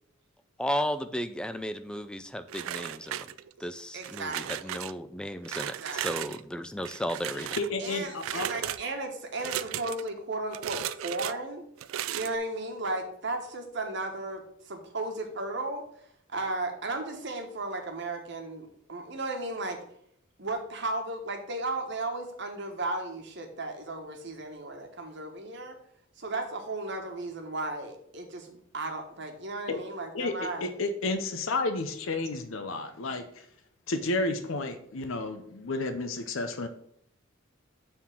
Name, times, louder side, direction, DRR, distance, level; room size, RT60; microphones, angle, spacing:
voice 1, 0.6-3.3 3.6-7.5, equal, 5° left, 11 dB, 0.3 m, -34 dB
sound 1, 2.5-3.6 4.0-4.9 5.4-6.4 6.8-7.7 8.2-8.8 9.4-10.1 10.5-11.3 11.8-12.4, right 11 dB, 80° right, 0.3 m, -35 dB
voice 2, 3.9-4.7 5.8-6.0 7.8-11.6 12.1-15.8 16.3-19.8 20.4-25.7 26.2-30.6, right 2 dB, 60° right, 4 dB, 1.2 m, -35 dB
voice 3, 7.6-8.7 29.7-29.8 30.1-30.3 30.6-33.5 33.9-36.7, left 3 dB, 75° left, 8 dB, 0.6 m, -31 dB
7.0 x 3.7 x 6.0 m, 0.70 s
head